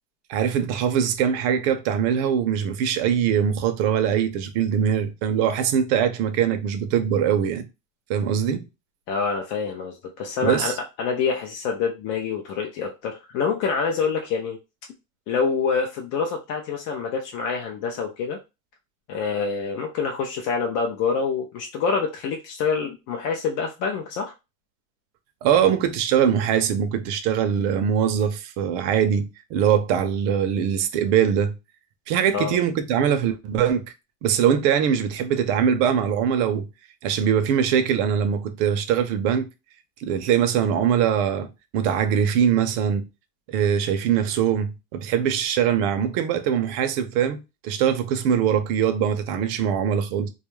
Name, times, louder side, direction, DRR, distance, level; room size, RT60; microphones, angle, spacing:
voice 1, 0.3-7.7 8.1-8.6 10.4-10.7 25.4-31.5 32.1-33.9 34.2-36.7 37.0-39.5 40.0-43.0 43.5-50.3, right 8 dB, 60° right, 0.6 m, -22 dB
voice 2, 9.1-14.6 15.3-18.4 19.1-24.3 32.3-32.6, left 5 dB, 40° left, 0.4 m, -26 dB
2.3 x 2.1 x 3.0 m
supercardioid pair, 140°, 42 cm